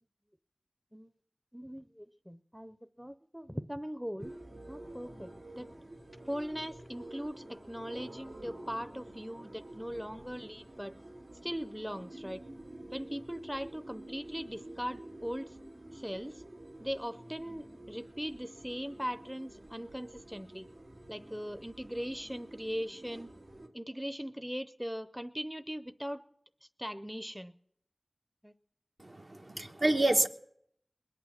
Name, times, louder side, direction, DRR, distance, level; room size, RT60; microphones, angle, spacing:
voice 1, 1.5-4.3 4.7-5.7 6.2-10.9 11.4-12.4 12.9-15.6 15.9-16.4 16.8-20.7 21.1-23.3 23.7-26.2 26.8-27.5 28.4-28.5, equal, 5° right, 11 dB, 0.6 m, -40 dB
sound 1, 4.2-23.7, right 1 dB, 80° right, 2.5 m, -49 dB
voice 2, 29.0-30.3, right 1 dB, 55° right, 4 dB, 1.1 m, -28 dB
21.0 x 8.9 x 7.2 m, 0.69 s
wide cardioid pair, 45°, 0 cm